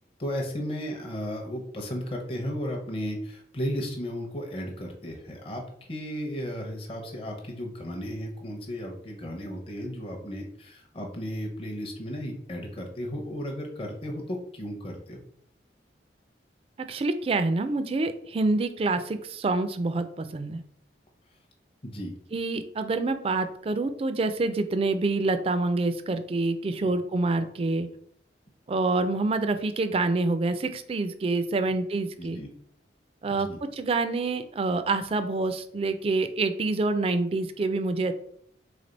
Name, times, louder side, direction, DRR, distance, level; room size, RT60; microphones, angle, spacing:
voice 1, 0.2-5.6 5.9-15.2 21.8-22.1 26.8-26.9 32.2-32.5 33.3-33.6, equal, 30° left, 1 dB, 0.6 m, -34 dB
voice 2, 16.9-20.6 22.3-27.9 28.7-32.4 33.2-38.1, right 3 dB, 30° right, 9 dB, 0.3 m, -27 dB
3.5 x 3.3 x 3.9 m, 0.66 s
head